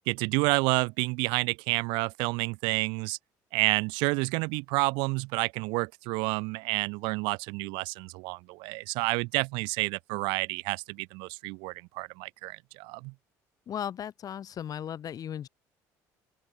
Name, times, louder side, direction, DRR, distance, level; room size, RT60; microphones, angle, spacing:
voice 1, 0.1-3.2 3.5-13.1, right 28 dB, 80° right, 2.4 m, -29 dB
voice 2, 13.7-15.5, left 9 dB, 50° left, 3.5 m, -36 dB
open air
supercardioid pair, 85°, 8 cm